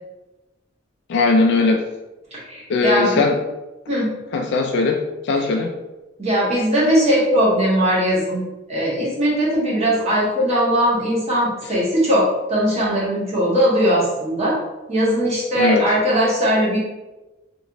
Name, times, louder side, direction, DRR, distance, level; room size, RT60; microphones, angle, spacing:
voice 1, 1.1-1.8 2.7-3.4 4.3-5.0 5.2-5.7 15.6-15.8, left 3 dB, 60° left, 1 dB, 0.3 m, -18 dB
voice 2, 2.3-3.2 3.9-4.1 5.3-5.4 6.2-14.6 14.9-16.8, equal, 35° right, -7 dB, 1.2 m, -19 dB
3.1 x 2.9 x 2.5 m, 1.1 s
head